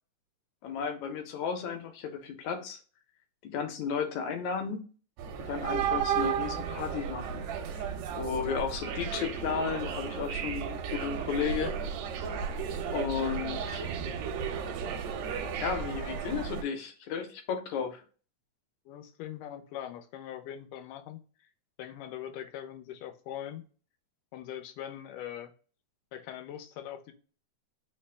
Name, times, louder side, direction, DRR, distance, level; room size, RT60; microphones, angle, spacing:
voice 1, 0.6-2.8 3.4-4.8 5.5-7.4 8.1-11.7 12.9-13.9 15.6-18.0, left 7 dB, 75° left, 1.9 m, -34 dB
sound 1, 5.2-16.6, right 7 dB, 80° right, 1.6 m, -34 dB
voice 2, 8.4-8.7 18.9-21.5 21.8-23.7 24.3-25.5 26.1-27.1, left 10 dB, 90° left, 2.2 m, -42 dB
4.8 x 2.0 x 3.2 m
omnidirectional pair, 3.5 m